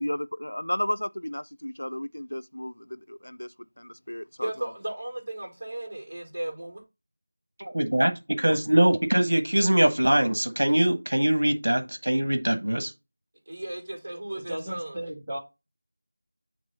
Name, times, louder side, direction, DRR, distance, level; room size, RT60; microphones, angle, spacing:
voice 1, 0.0-2.7 3.1-3.5 3.8-4.5, left 1 dB, 70° left, 0.3 m, -32 dB
voice 2, 4.4-6.8 13.5-15.1, right 1 dB, 30° right, 2.1 m, -35 dB
voice 3, 7.6-12.9, right 1 dB, 60° right, 1.4 m, -23 dB
voice 4, 14.3-15.4, right 1 dB, 15° right, 2.0 m, -35 dB
9.4 x 3.3 x 4.0 m
figure-of-eight pair, 170°, 0 cm